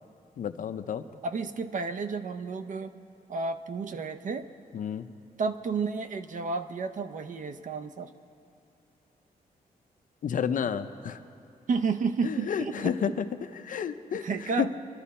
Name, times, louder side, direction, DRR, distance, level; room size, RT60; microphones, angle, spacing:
voice 1, 0.4-1.0 4.7-5.1 10.2-11.2 12.2-13.2 13.6-14.3 14.6-14.7, left 8 dB, 60° left, 10 dB, 0.6 m, -30 dB
voice 2, 1.2-2.9 3.3-4.5 5.4-8.1 11.7-13.1 14.1-14.7, right 4 dB, 55° right, 9 dB, 0.7 m, -31 dB
25.0 x 12.0 x 4.3 m, 2.5 s
wide cardioid pair, 160°, 16 cm